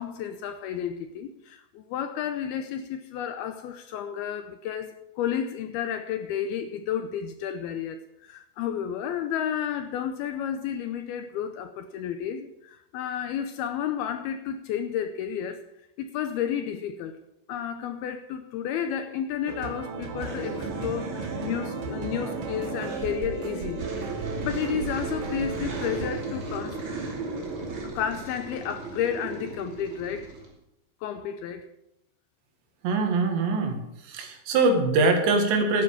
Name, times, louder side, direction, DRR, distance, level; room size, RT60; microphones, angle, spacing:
voice 1, 0.0-15.6 16.0-17.2 17.5-23.9 24.4-26.8 27.8-30.3 31.0-31.6, left 9 dB, 80° left, 2.3 m, -31 dB
sound 1, 19.5-26.1, right 5 dB, 60° right, 2.9 m, -36 dB
sound 2, 20.2-30.5, right 3 dB, 35° right, 2.7 m, -35 dB
voice 2, 32.8-33.8 34.0-35.8, right 3 dB, 80° right, 4.1 m, -23 dB
12.0 x 9.4 x 7.2 m
omnidirectional pair, 5.1 m